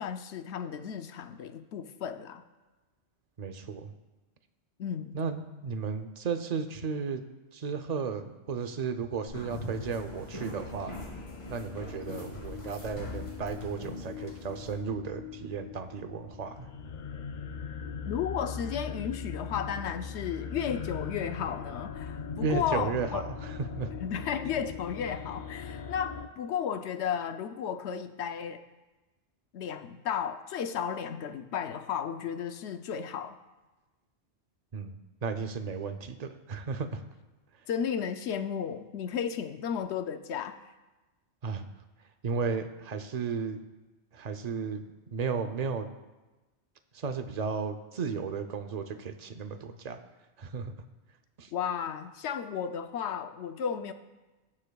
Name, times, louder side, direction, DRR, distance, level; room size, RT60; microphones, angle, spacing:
voice 1, 0.0-2.4 4.8-5.2 18.0-23.2 24.0-28.6 29.5-33.4 37.7-40.6 51.5-53.9, left 8 dB, 75° left, 9 dB, 0.9 m, -34 dB
voice 2, 3.4-3.9 5.1-7.2 7.5-10.9 11.5-16.7 22.3-23.9 34.7-37.0 41.4-41.7 42.2-43.6 44.1-44.8 45.1-45.9 46.9-50.0 50.4-50.8 51.4-51.5, right 5 dB, 45° right, 9 dB, 0.6 m, -34 dB
sound 1, 9.3-14.7, left 1 dB, 30° left, 2.5 m, -42 dB
sound 2, 10.0-26.3, left 6 dB, 55° left, 0.5 m, -41 dB
18.5 x 7.4 x 2.3 m, 1.1 s
omnidirectional pair, 1.2 m